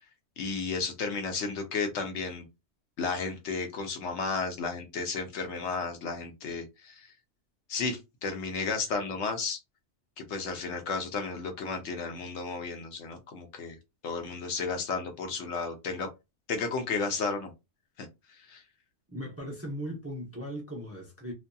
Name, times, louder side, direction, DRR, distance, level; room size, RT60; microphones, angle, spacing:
voice 1, 0.4-2.4 3.0-7.1 7.7-9.6 10.2-13.8 14.0-16.1 16.5-17.5 18.0-18.1 18.5-18.6, left 4 dB, 70° left, 0.9 m, -33 dB
voice 2, 19.1-21.3, equal, 15° right, 0.5 m, -38 dB
2.6 x 2.5 x 2.2 m
omnidirectional pair, 1.2 m